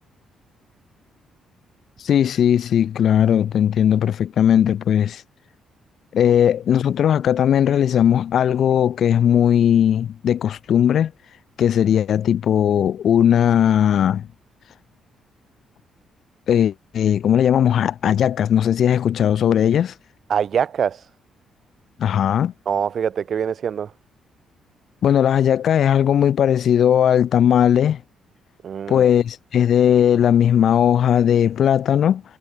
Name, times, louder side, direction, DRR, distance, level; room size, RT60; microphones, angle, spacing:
voice 1, 2.0-5.2 6.1-11.1 11.6-14.3 16.5-19.9 22.0-22.5 25.0-28.0 28.9-32.2, left 9 dB, 65° left, 0.6 m, -18 dB
voice 2, 20.3-21.0 22.7-23.9 28.6-29.0, right 8 dB, 55° right, 0.5 m, -23 dB
cardioid pair, 90°, 0 cm